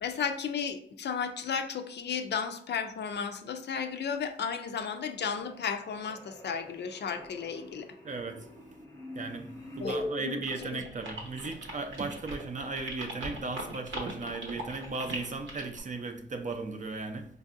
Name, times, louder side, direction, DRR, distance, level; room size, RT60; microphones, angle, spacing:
voice 1, 0.0-7.9 9.8-10.8, left 6 dB, 60° left, 0.4 m, -34 dB
sound 1, 4.3-4.7 4.9-10.1, left 1 dB, 15° left, 0.7 m, -43 dB
voice 2, 8.0-8.4 9.2-9.5 9.8-17.3, right 3 dB, 40° right, 0.5 m, -36 dB
sound 2, 10.4-15.8, right 1 dB, 80° right, 0.9 m, -40 dB
4.5 x 2.6 x 2.4 m
cardioid pair, 90°, 20 cm